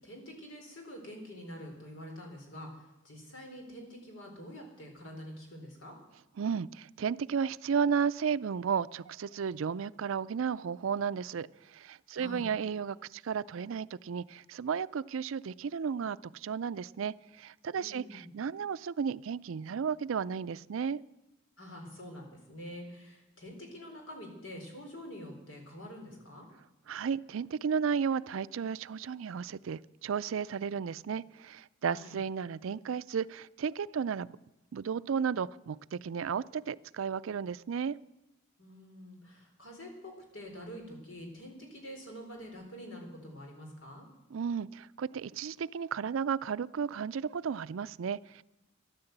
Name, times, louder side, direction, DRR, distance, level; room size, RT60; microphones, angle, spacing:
voice 1, 0.0-5.9 12.1-12.4 17.8-18.3 21.6-26.4 31.8-32.2 38.6-44.1, equal, 75° left, 2 dB, 4.2 m, -46 dB
voice 2, 6.4-21.0 26.9-34.3 34.7-37.9 44.3-48.4, right 6 dB, 85° right, 18 dB, 0.4 m, -33 dB
13.5 x 11.5 x 8.0 m, 0.97 s
head